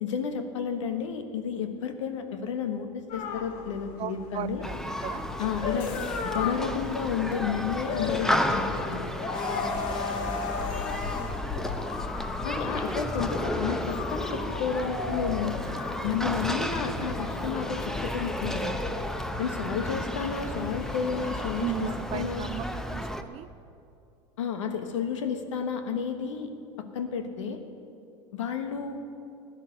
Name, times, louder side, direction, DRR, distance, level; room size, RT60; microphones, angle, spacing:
voice 1, 0.0-4.6 5.4-5.9 6.2-9.0 12.4-15.5 16.0-18.7 19.4-22.5 24.4-26.5 26.8-27.6 28.3-29.0, left 7 dB, 80° left, 7 dB, 1.4 m, -31 dB
sound 1, 3.1-22.5, left 5 dB, 60° left, 1.4 m, -36 dB
voice 2, 4.0-4.8 5.0-5.2 9.4-11.0 21.6-23.5, right 12 dB, 40° right, 17 dB, 0.4 m, -37 dB
Human group actions, 4.6-23.2, equal, 5° left, 0.8 m, -33 dB
16.0 x 10.5 x 6.6 m, 2.6 s
hypercardioid pair, 90°, 16 cm